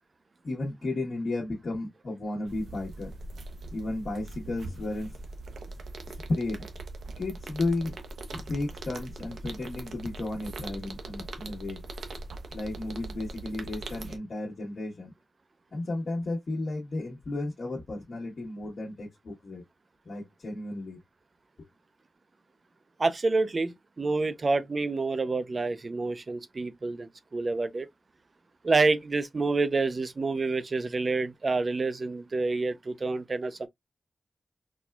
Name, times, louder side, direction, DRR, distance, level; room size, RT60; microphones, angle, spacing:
voice 1, 0.4-3.1 3.7-5.1 6.1-6.6 7.2-8.0 8.3-11.8 12.5-15.1 15.7-19.6 20.0-21.0 21.6-21.7, left 2 dB, 65° left, 1.1 m, -33 dB
sound 1, 2.5-14.2, right 2 dB, 85° right, 0.6 m, -41 dB
voice 2, 23.0-27.9 28.6-33.7, right 3 dB, 40° right, 0.5 m, -28 dB
4.2 x 2.3 x 2.2 m
wide cardioid pair, 100°, 0 cm